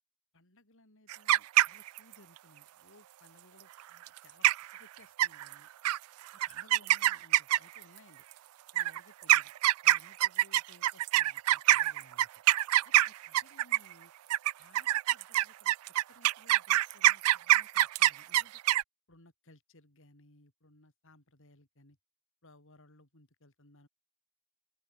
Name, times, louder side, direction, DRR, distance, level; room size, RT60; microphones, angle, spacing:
voice 1, 0.3-4.5 4.7-5.7 6.5-8.2 8.7-9.5 9.8-12.3 12.8-14.1 14.6-15.7 16.1-18.6 19.1-22.0 22.4-23.9, left 2 dB, 65° left, 5.0 m, -61 dB
sound 1, 1.1-2.1 4.1-4.2 4.4-4.8 5.2-5.5 5.8-6.0 6.4-7.8 8.7-13.9 14.3-18.8, right 15 dB, 80° right, 0.3 m, -24 dB
open air
head